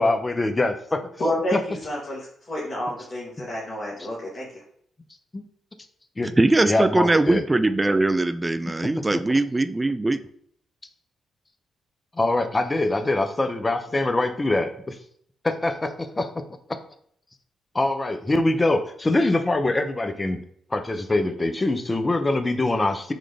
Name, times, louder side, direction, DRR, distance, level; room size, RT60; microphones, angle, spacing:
voice 1, 0.0-1.0 1.5-1.6 5.3-5.4 6.2-6.3 6.7-7.4 9.1-9.2 12.2-15.0 15.4-16.4 17.7-20.4 20.7-23.1, left 2 dB, 25° left, 0.6 m, -23 dB
voice 2, 1.2-2.2 2.5-4.5, left 1 dB, 50° left, 1.4 m, -29 dB
voice 3, 6.2-10.2, right 2 dB, 20° right, 0.4 m, -21 dB
3.9 x 3.1 x 3.5 m
hypercardioid pair, 45°, 0 cm